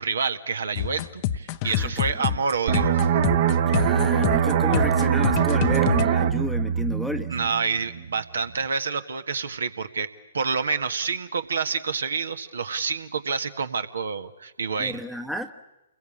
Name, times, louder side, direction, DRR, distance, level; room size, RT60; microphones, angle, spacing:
voice 1, 0.0-3.0 7.3-10.1 10.3-15.0, right 5 dB, 65° right, 9 dB, 1.7 m, -28 dB
sound 1, 0.8-6.1, left 11 dB, 35° left, 0.9 m, -27 dB
voice 2, 1.6-2.3 3.7-7.3 14.8-15.5, left 1 dB, ahead, 6 dB, 1.1 m, -32 dB
sound 2, 2.7-8.1 8.4-8.6, right 8 dB, 45° right, 1.5 m, -22 dB
29.0 x 22.0 x 8.8 m, 1.0 s
figure-of-eight pair, 125°, 0 cm